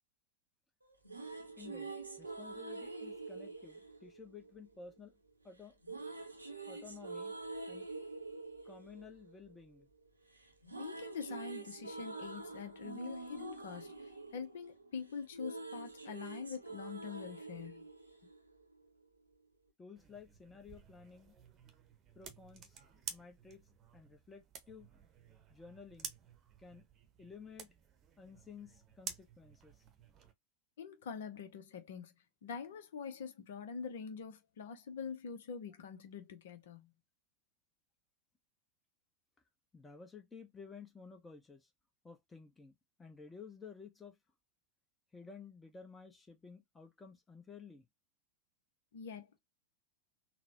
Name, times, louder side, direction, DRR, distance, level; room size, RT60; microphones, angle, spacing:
sound 1, 0.8-5.0 5.8-10.1 10.3-18.9, right 3 dB, 85° right, 0.7 m, -46 dB
voice 1, 1.6-5.2 5.4-5.8 6.7-7.3 7.7-7.9 8.6-9.9 19.8-21.3 22.1-22.8 23.1-23.6 23.9-25.0 25.5-26.1 26.6-26.8 27.2-27.7 28.2-29.8 39.7-41.7 42.0-44.2 45.1-47.9, left 5 dB, 10° left, 0.8 m, -53 dB
voice 2, 10.7-17.8 30.8-32.1 32.4-36.9 48.9-49.4, left 6 dB, 60° left, 0.7 m, -45 dB
sound 2, 20.0-30.3, right 6 dB, 30° right, 0.9 m, -52 dB
4.0 x 2.1 x 2.7 m
figure-of-eight pair, 90°, 0 cm